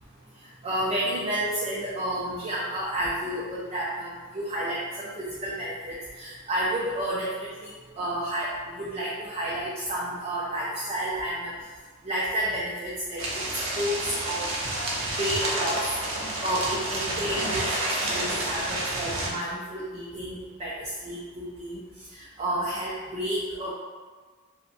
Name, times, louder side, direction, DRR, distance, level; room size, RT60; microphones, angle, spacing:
voice 1, 0.6-7.7 8.0-11.5 12.0-13.2 13.5-14.5 15.2-15.9 16.4-21.8 22.1-23.7, right 1 dB, 30° right, -6 dB, 0.4 m, -31 dB
sound 1, 13.2-19.3, right 1 dB, 55° right, 0.7 m, -29 dB
5.2 x 2.2 x 2.5 m, 1.4 s
head